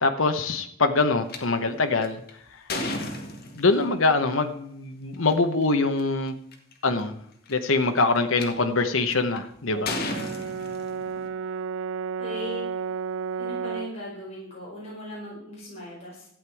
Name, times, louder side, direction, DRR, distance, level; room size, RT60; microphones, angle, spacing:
voice 1, 0.0-2.2 2.5-2.6 3.6-6.4 6.8-7.2 7.5-9.9, left 3 dB, 85° left, 6 dB, 1.1 m, -24 dB
sound 1, 1.3-1.4 2.0-3.9 5.1-5.3 6.0-6.1 6.3-6.7 7.5-8.4 9.1-9.4 9.9-11.3, left 2 dB, 50° left, 1.8 m, -33 dB
Brass instrument, 9.7-14.0, right 6 dB, 75° right, 0.4 m, -32 dB
voice 2, 12.2-12.7 13.4-16.3, left 1 dB, 30° left, -6 dB, 4.9 m, -38 dB
13.0 x 8.9 x 4.8 m, 0.70 s
head